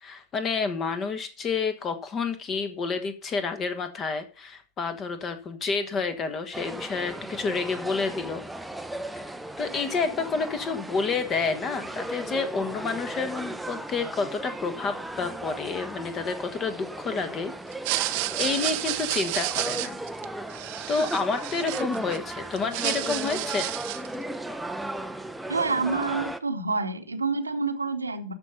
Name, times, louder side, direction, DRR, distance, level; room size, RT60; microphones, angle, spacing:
voice 1, 0.0-8.4 9.6-17.5 17.9-18.1 18.4-20.0 20.9-23.7, left 4 dB, 25° left, 10 dB, 1.4 m, -29 dB
sound 1, 6.5-26.4, right 1 dB, 5° right, 0.7 m, -36 dB
sound 2, 17.7-22.2 22.5-24.1, right 18 dB, 45° right, 0.7 m, -31 dB
voice 2, 25.5-28.3, right 4 dB, 80° right, 6 dB, 1.1 m, -28 dB
13.0 x 4.4 x 5.3 m, 0.38 s
figure-of-eight pair, 90°, 0 cm